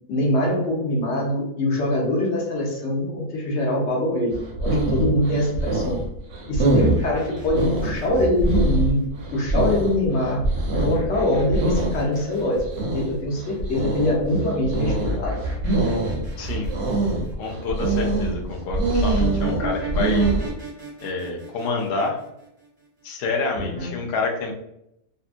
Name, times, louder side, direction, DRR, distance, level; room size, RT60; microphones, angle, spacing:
voice 1, 0.1-6.0 6.5-9.0 9.3-10.5 10.8-12.7 12.9-15.4, left 1 dB, 55° left, -2 dB, 1.0 m, -23 dB
sound 1, 4.3-20.5, right 2 dB, 65° right, 0.7 m, -24 dB
sound 2, 6.8-9.0 10.5-13.2 14.8-17.7 19.2-22.6 23.6-23.9, equal, 20° right, 0.7 m, -34 dB
voice 2, 16.4-16.7 17.4-20.3 21.0-22.2 23.0-24.5, left 3 dB, 75° left, 0 dB, 0.5 m, -27 dB
2.6 x 2.5 x 2.4 m, 0.79 s
omnidirectional pair, 1.6 m